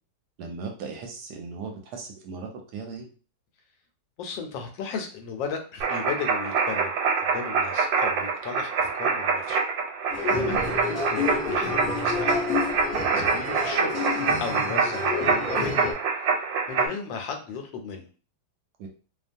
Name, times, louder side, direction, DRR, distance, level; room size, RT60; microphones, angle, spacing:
voice 1, 0.4-3.1 10.4-10.6 18.8-18.9, right 4 dB, 75° right, 2 dB, 1.0 m, -37 dB
voice 2, 4.2-6.9 7.2-9.6 10.3-12.4 13.1-14.0 14.4-16.0 16.7-18.1, left 5 dB, 90° left, 4 dB, 1.3 m, -35 dB
sound 1, 5.8-16.9, right 5 dB, 90° right, 1.3 m, -26 dB
sound 2, 10.1-15.9, left 4 dB, 50° left, 0.7 m, -30 dB
2.8 x 2.3 x 2.5 m, 0.37 s
omnidirectional pair, 2.0 m